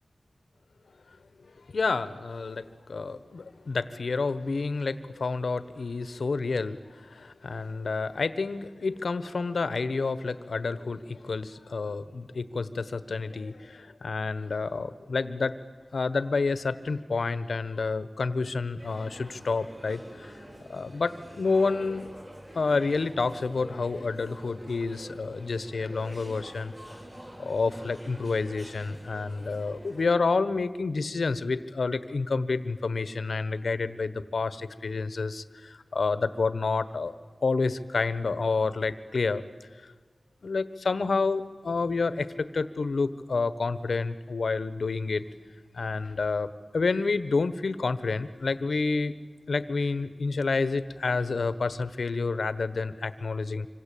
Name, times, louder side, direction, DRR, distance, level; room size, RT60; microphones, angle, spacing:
voice 1, 1.7-15.5 15.9-20.3 20.7-22.1 22.5-26.7 27.4-37.1 37.4-39.4 40.4-45.2 45.7-46.5 46.7-49.1 49.5-53.7, left 4 dB, 85° left, 14 dB, 1.2 m, -29 dB
sound 1, 18.8-30.1, equal, 25° right, 7.9 m, -46 dB
26.0 x 26.0 x 8.6 m, 1.4 s
wide cardioid pair, 70°, 0 cm